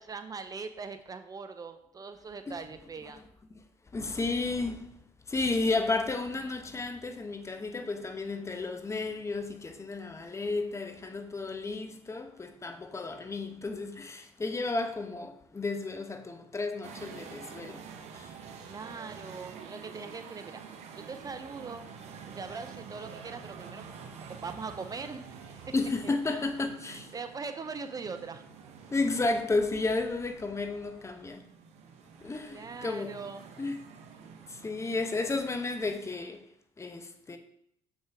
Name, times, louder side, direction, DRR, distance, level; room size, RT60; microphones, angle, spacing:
voice 1, 0.0-3.2 18.7-20.6 20.9-21.8 22.3-23.9 24.3-25.7 26.0-26.4 26.8-28.4 32.5-33.4, right 4 dB, 30° right, 0.7 m, -41 dB
voice 2, 3.9-4.9 5.3-17.8 18.1-18.4 25.7-27.1 28.9-31.4 32.2-33.2 33.6-33.8 34.5-36.4 36.8-37.4, left 3 dB, 25° left, 1.0 m, -32 dB
sound 1, 16.8-35.9, right 6 dB, 65° right, 1.1 m, -48 dB
7.2 x 6.3 x 3.6 m
hypercardioid pair, 65°, 12 cm